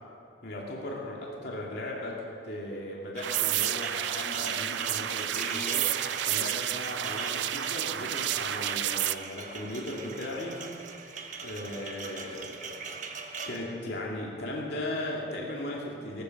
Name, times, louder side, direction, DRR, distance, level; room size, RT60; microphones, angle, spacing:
voice 1, 0.4-10.6 11.4-16.2, left 1 dB, 60° left, -2 dB, 2.4 m, -37 dB
sound 1, 3.2-13.6, right 5 dB, 45° right, 1.2 m, -40 dB
sound 2, 3.2-9.2, right 12 dB, 70° right, 0.4 m, -30 dB
sound 3, 5.4-8.4, left 2 dB, 10° left, 1.0 m, -45 dB
19.5 x 12.5 x 5.4 m, 2.5 s
head